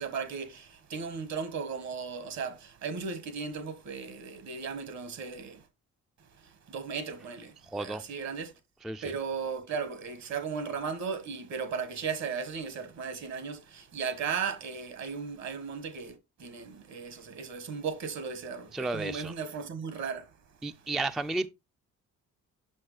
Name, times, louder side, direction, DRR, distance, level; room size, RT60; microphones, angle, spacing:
voice 1, 0.0-5.6 6.7-8.5 9.0-16.1 16.4-20.2, right 6 dB, 65° right, 1.4 m, -36 dB
voice 2, 7.7-8.0 8.8-9.1 18.7-19.3 20.6-21.5, right 2 dB, ahead, 0.3 m, -32 dB
6.3 x 5.7 x 3.2 m
cardioid pair, 90°, 30 cm